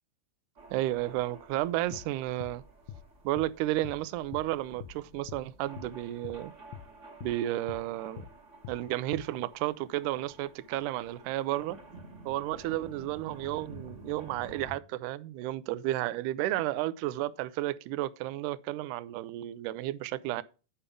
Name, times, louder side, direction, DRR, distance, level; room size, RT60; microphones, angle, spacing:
sound 1, 0.6-14.8, right 2 dB, 40° right, 1.1 m, -51 dB
voice 1, 0.7-2.6 3.2-6.5 7.2-8.3 8.7-11.8 12.3-20.4, right 15 dB, 80° right, 2.0 m, -32 dB
sound 2, 1.9-2.1 2.4-2.6 2.9-3.0 3.4-3.5 3.8-4.0 4.3-4.5 4.8-5.0 5.3-5.4 5.8-5.9 6.2-6.4 6.7-6.9 7.2-7.4 7.7-7.8 8.2-8.3 8.6-8.8 9.1-9.3, left 10 dB, 80° left, 1.8 m, -44 dB
8.8 x 5.6 x 5.0 m
omnidirectional pair, 4.0 m